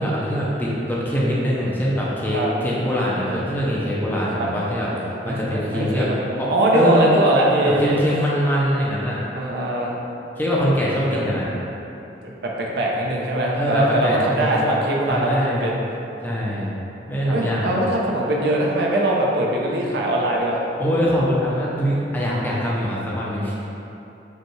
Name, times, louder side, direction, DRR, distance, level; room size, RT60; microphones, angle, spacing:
voice 1, 0.0-6.1 6.4-7.1 7.6-9.2 10.4-11.4 13.6-14.6 15.1-15.7 16.2-16.7 17.1-17.7 20.8-23.5, equal, 10° left, -6 dB, 0.5 m, -23 dB
voice 2, 5.2-6.2 6.5-8.0 9.3-10.0 11.1-11.2 12.2-15.8 17.3-20.6, right 1 dB, 65° right, -2 dB, 0.5 m, -21 dB
5.2 x 2.3 x 3.1 m, 3.0 s
head